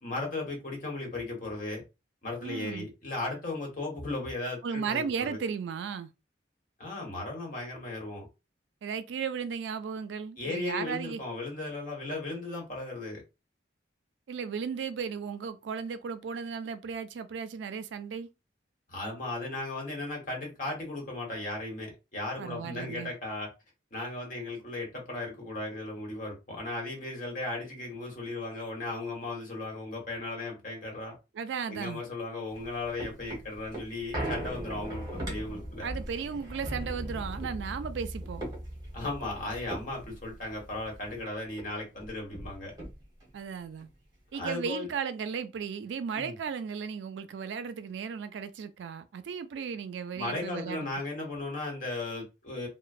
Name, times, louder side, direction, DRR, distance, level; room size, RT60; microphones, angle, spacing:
voice 1, 0.0-1.8 2.2-5.4 6.8-8.3 10.4-13.2 18.9-23.5 23.9-31.1 31.7-35.9 38.9-42.7 44.3-44.9 46.1-46.3 50.1-52.7, left 2 dB, 45° left, 1.1 m, -36 dB
voice 2, 2.4-2.9 4.6-6.1 8.8-11.2 14.3-18.3 22.4-23.1 31.3-32.0 35.8-38.4 43.3-43.9 44.3-50.9, right 6 dB, 75° right, 0.3 m, -35 dB
sound 1, 32.5-41.2 41.6-41.7 41.9-43.3 43.8-43.9, right 1 dB, 20° right, 1.0 m, -39 dB
3.0 x 2.0 x 2.4 m
head